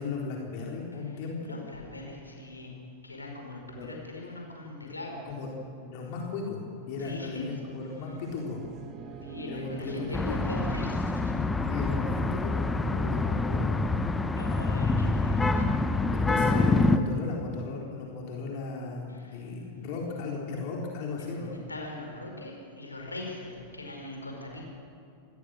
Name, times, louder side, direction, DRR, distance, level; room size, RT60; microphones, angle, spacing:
voice 1, 0.0-1.6 3.7-3.9 4.8-4.9 5.3-5.5 5.8-6.6 6.9-8.6 9.5-10.4 11.7-13.8 16.1-21.6, left 4 dB, 45° left, -1 dB, 4.1 m, -36 dB
voice 2, 1.4-2.7 3.0-5.2 7.0-7.5 9.2-10.9 14.4-16.2 16.6-16.9 19.1-19.4 21.7-24.7, left 2 dB, 80° left, 1 dB, 5.2 m, -41 dB
sound 1, 6.8-11.4, right 5 dB, 35° right, 1.9 m, -44 dB
sound 2, 10.1-17.0, left 3 dB, 10° left, 1.1 m, -26 dB
sound 3, 10.1-11.5, equal, 80° right, 5.6 m, -51 dB
26.0 x 20.5 x 6.6 m, 2.4 s
figure-of-eight pair, 90°, 0 cm